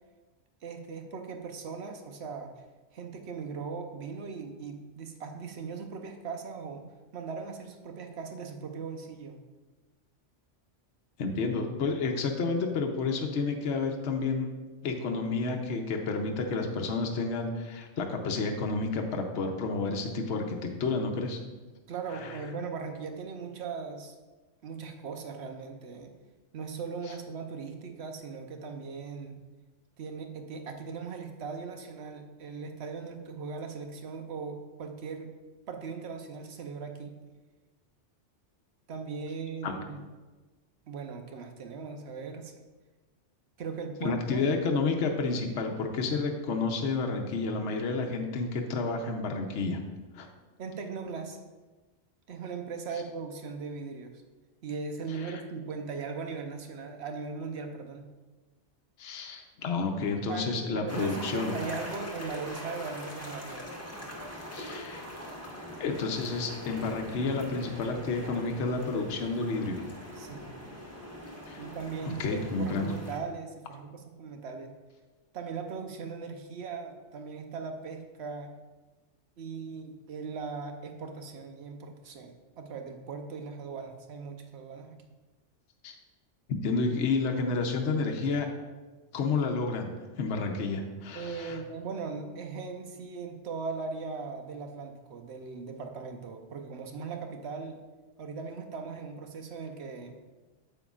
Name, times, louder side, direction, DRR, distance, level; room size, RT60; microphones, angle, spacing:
voice 1, 0.6-2.5 2.9-6.8 7.1-9.4 21.9-24.1 24.6-26.1 26.5-29.3 30.0-35.3 35.7-37.2 38.9-40.0 40.9-42.5 43.6-44.4 50.6-51.4 52.3-54.2 54.6-58.1 60.3-63.6 70.2-70.5 71.6-74.7 75.3-78.5 79.4-85.0 91.1-97.8 98.2-100.1, right 5 dB, 65° right, 5 dB, 1.0 m, -39 dB
voice 2, 11.2-14.5 14.8-21.4 22.1-22.4 39.6-39.7 44.0-49.8 50.1-50.3 55.2-55.4 59.0-61.5 64.5-65.0 65.8-69.8 71.5-71.6 72.0-72.9 85.8-85.9 86.5-88.5 89.1-91.6, left 4 dB, 70° left, 2 dB, 1.0 m, -30 dB
sound 1, 60.9-73.2, equal, 15° left, 1.2 m, -42 dB
9.2 x 7.6 x 2.4 m, 1.2 s
omnidirectional pair, 1.2 m